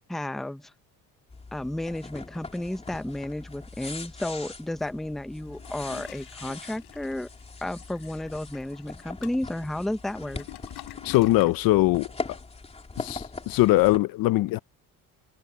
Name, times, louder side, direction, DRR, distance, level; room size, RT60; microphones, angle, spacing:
voice 1, 0.1-0.7 1.5-7.3 7.6-10.5, left 1 dB, ahead, 0.6 m, -32 dB
sound 1, 1.3-14.0, left 3 dB, 15° left, 3.5 m, -41 dB
Toilet flush, 5.4-11.6, left 19 dB, 85° left, 4.0 m, -47 dB
voice 2, 11.0-12.1 13.0-14.6, left 18 dB, 65° left, 0.7 m, -21 dB
cardioid pair, 135°, 37 cm